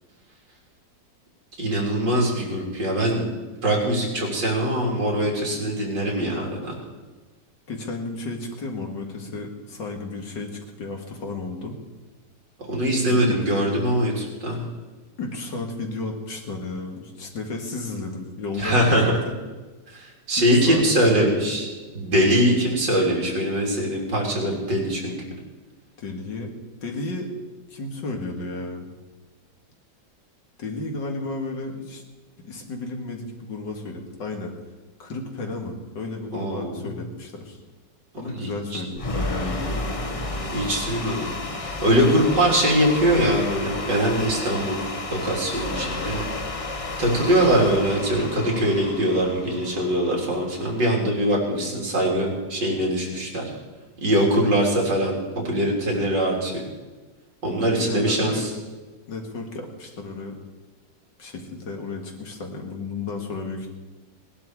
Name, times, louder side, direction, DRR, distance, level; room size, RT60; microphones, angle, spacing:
voice 1, 1.6-3.3 3.6-6.7 12.7-14.6 18.6-19.1 19.9-20.0 20.3-21.7 21.9-25.2 36.3-36.8 38.4-38.8 40.5-41.3 41.6-44.8 45.1-46.2 47.0-53.5 54.0-55.2 55.4-56.6 57.4-58.5, right 1 dB, 70° right, -2 dB, 4.1 m, -22 dB
voice 2, 7.7-11.8 13.1-13.6 15.2-19.3 20.4-21.3 26.0-26.5 26.8-27.3 27.7-28.9 30.6-32.0 32.4-34.5 35.0-37.6 38.2-39.7 57.5-58.5 59.1-60.4 61.2-63.7, left 3 dB, 70° left, 2 dB, 2.5 m, -33 dB
sound 1, 39.0-51.1, left 2 dB, 35° left, 0.6 m, -32 dB
18.5 x 11.5 x 4.8 m, 1.3 s
omnidirectional pair, 2.0 m